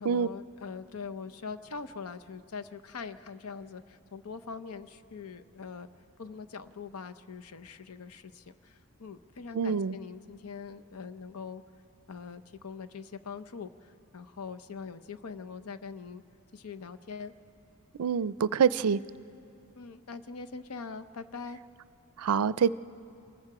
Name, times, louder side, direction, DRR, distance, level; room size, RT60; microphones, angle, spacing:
voice 1, 0.0-5.9 6.2-11.6 12.1-16.2 16.5-17.3 19.8-21.6, left 5 dB, 85° left, 10 dB, 0.7 m, -42 dB
voice 2, 9.5-10.0 18.0-19.0 22.2-22.7, right 6 dB, 85° right, 17 dB, 0.4 m, -26 dB
28.0 x 21.0 x 4.9 m, 2.5 s
head